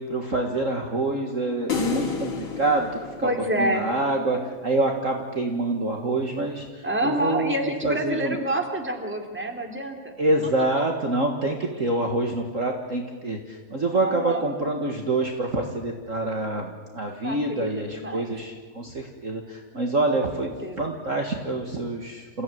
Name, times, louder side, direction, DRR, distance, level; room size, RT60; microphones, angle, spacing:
voice 1, 0.0-2.9 3.2-3.3 3.6-7.6 7.8-8.4 10.2-22.4, right 2 dB, 40° right, 2 dB, 2.0 m, -26 dB
sound 1, 1.7-4.1, left 5 dB, 70° left, 3.5 m, -30 dB
voice 2, 3.2-3.9 6.8-10.1 10.4-10.5 13.9-14.5 17.2-18.3 20.1-20.9, right 1 dB, 5° right, 3 dB, 2.8 m, -28 dB
28.5 x 15.5 x 9.4 m, 1.4 s
omnidirectional pair, 2.2 m